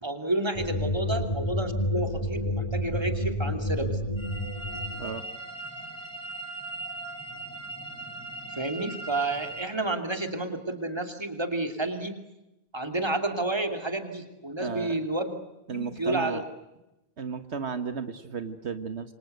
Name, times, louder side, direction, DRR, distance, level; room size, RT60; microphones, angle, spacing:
voice 1, 0.0-4.0 8.5-12.2 12.7-15.3 15.7-16.4, right 2 dB, 25° right, 6 dB, 2.8 m, -30 dB
sound 1, 0.5-5.2, left 1 dB, 30° left, 2.8 m, -30 dB
sound 2, 4.2-9.7, right 2 dB, 5° left, 6.4 m, -39 dB
voice 2, 14.6-14.9 15.7-16.4 17.2-19.1, right 5 dB, 80° right, 10 dB, 1.7 m, -34 dB
28.5 x 25.5 x 8.0 m, 0.95 s
omnidirectional pair, 1.1 m